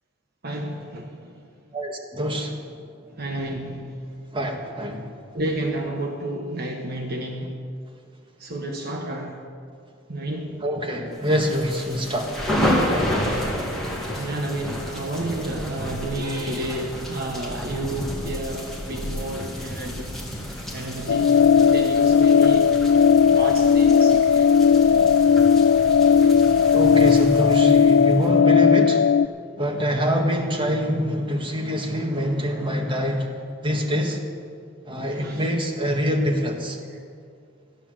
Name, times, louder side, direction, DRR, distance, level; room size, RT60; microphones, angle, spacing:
voice 1, 0.4-1.4 3.2-4.0 5.3-7.6 8.4-9.4 10.1-10.6 13.3-13.5 13.9-20.1 20.7-22.7 23.2-24.5 34.9-35.4 36.9-37.0, right 1 dB, 50° right, 1 dB, 1.1 m, -31 dB
voice 2, 1.7-2.6 4.3-5.1 10.6-12.4 26.7-29.0 29.6-33.3 33.6-34.2 34.9-36.8, equal, 25° right, 0 dB, 1.7 m, -25 dB
sound 1, 11.3-28.3, equal, ahead, 2.2 m, -30 dB
sound 2, 21.1-29.3, left 6 dB, 75° left, 0.3 m, -16 dB
14.0 x 9.8 x 7.5 m, 2.3 s
head